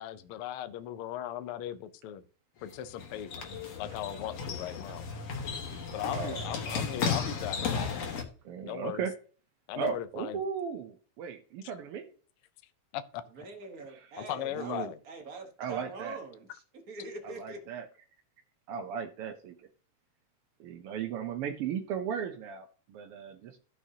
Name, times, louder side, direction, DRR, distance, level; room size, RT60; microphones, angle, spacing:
voice 1, 0.0-2.2 2.6-3.3 3.8-5.1 5.9-7.9 8.6-9.0 9.7-10.4 12.9-13.2 14.2-15.0, left 11 dB, 85° left, 12 dB, 1.2 m, -37 dB
sound 1, 2.6-8.2, left 5 dB, 60° left, 2.5 m, -35 dB
voice 2, 6.1-6.4 8.4-9.1 9.8-12.1 13.9-14.1 14.5-14.9 15.6-16.2 17.2-17.9 18.7-19.6 20.6-23.6, right 7 dB, 70° right, 4 dB, 1.4 m, -36 dB
voice 3, 13.3-17.6, right 3 dB, 50° right, 4 dB, 1.1 m, -43 dB
14.0 x 6.5 x 2.8 m, 0.40 s
omnidirectional pair, 3.4 m